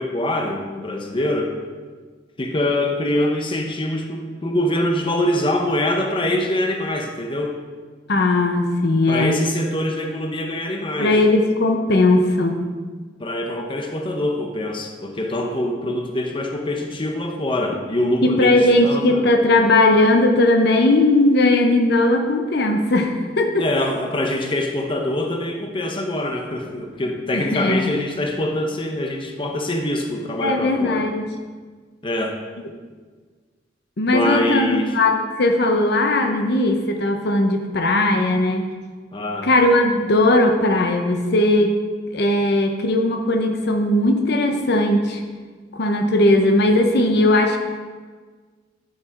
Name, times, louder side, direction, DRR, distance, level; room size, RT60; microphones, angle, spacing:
voice 1, 0.0-1.6 2.4-7.6 9.1-11.2 13.2-19.2 23.6-31.1 32.0-32.4 34.1-34.9 39.1-39.5, left 1 dB, 30° left, 3 dB, 0.8 m, -24 dB
voice 2, 8.1-9.4 11.0-12.6 18.2-23.6 27.3-27.9 30.4-31.3 34.0-38.7 39.4-41.7 42.1-45.2 45.7-47.6, left 2 dB, 60° left, 4 dB, 0.8 m, -18 dB
8.5 x 5.9 x 4.7 m, 1.5 s
head